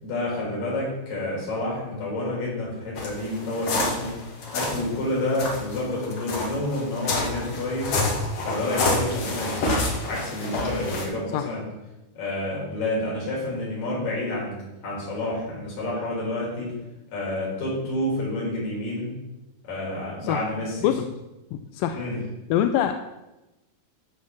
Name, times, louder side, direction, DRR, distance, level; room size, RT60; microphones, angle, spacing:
voice 1, 0.0-4.1 4.5-8.0 8.4-11.6 12.2-14.6 14.8-16.7 17.1-19.1 19.6-20.9 21.9-22.2, left 1 dB, 65° left, -5 dB, 5.7 m, -29 dB
sound 1, 3.0-4.9 5.3-11.1, left 2 dB, 50° left, 2.5 m, -28 dB
voice 2, 21.5-22.0 22.5-23.0, left 10 dB, 85° left, 7 dB, 2.2 m, -24 dB
13.5 x 4.6 x 5.9 m, 0.99 s
omnidirectional pair, 4.2 m